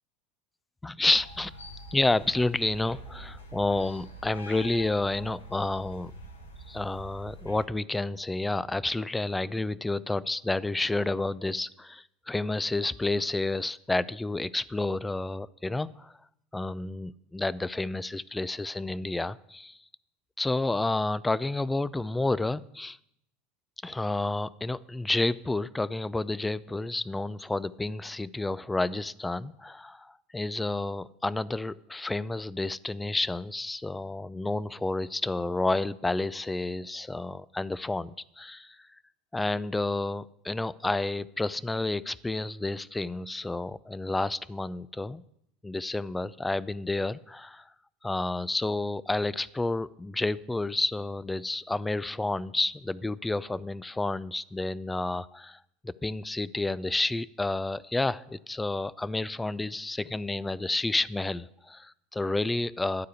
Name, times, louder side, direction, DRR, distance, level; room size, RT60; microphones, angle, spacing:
voice 1, 0.8-1.5 1.9-6.1 6.7-16.1 16.5-19.8 20.4-23.0 23.8-38.9 39.3-45.2 45.6-47.7 48.0-55.6 55.8-63.1, left 2 dB, 10° left, 20 dB, 0.3 m, -30 dB
sound 1, 1.0-7.7, equal, 80° left, 1.2 m, -45 dB
11.5 x 4.9 x 8.2 m, 0.77 s
figure-of-eight pair, 80°, 0 cm